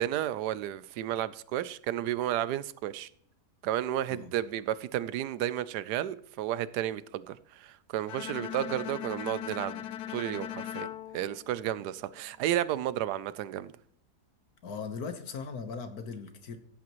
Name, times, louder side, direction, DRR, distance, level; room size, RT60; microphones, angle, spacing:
voice 1, 0.0-3.1 3.6-13.7, right 12 dB, 90° right, 1.2 m, -32 dB
Bowed string instrument, 8.1-12.2, left 11 dB, 85° left, 1.2 m, -40 dB
voice 2, 14.6-16.6, left 5 dB, 70° left, 1.6 m, -39 dB
16.0 x 8.6 x 3.0 m
omnidirectional pair, 1.7 m